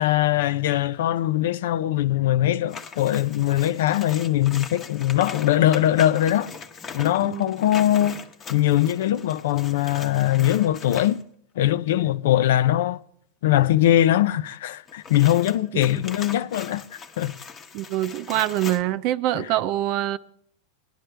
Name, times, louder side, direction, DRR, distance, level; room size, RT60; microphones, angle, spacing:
voice 1, 0.0-6.5 6.9-8.2 8.5-11.2 11.6-13.0 13.4-17.3 19.3-19.5, left 13 dB, 75° left, 0.6 m, -21 dB
sound 1, 2.7-11.2 14.9-18.8, left 5 dB, 20° left, 1.1 m, -40 dB
voice 2, 17.7-20.2, right 14 dB, 45° right, 0.5 m, -24 dB
19.5 x 11.5 x 3.4 m
supercardioid pair, 155°, 0 cm